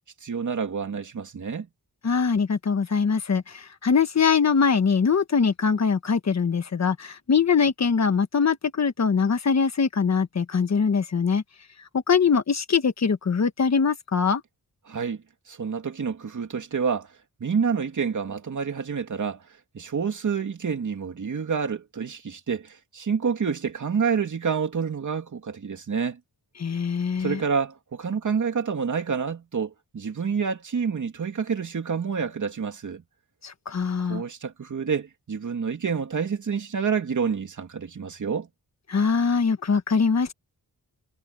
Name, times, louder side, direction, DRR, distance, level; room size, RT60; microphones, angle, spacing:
voice 1, 0.2-1.7 14.9-17.1 17.4-19.4 19.7-26.2 27.2-33.0 34.1-38.5, right 6 dB, 55° right, 2.9 m, -28 dB
voice 2, 2.0-11.4 11.9-14.4 26.6-27.4 33.4-34.2 38.9-40.3, left 5 dB, 45° left, 1.4 m, -22 dB
wide cardioid pair, 175°, 37 cm